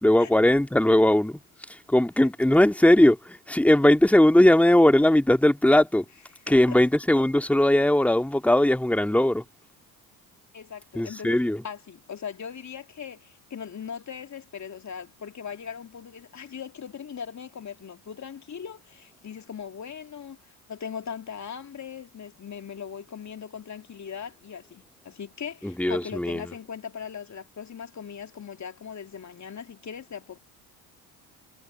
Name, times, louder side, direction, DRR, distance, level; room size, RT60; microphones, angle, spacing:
voice 1, 0.0-1.4 1.7-6.1 6.5-9.4 10.9-11.6 25.6-26.5, left 1 dB, 5° left, 2.4 m, -19 dB
voice 2, 6.4-6.8 10.5-20.4 20.7-30.4, left 7 dB, 35° left, 2.8 m, -39 dB
hypercardioid pair, 60°, 48 cm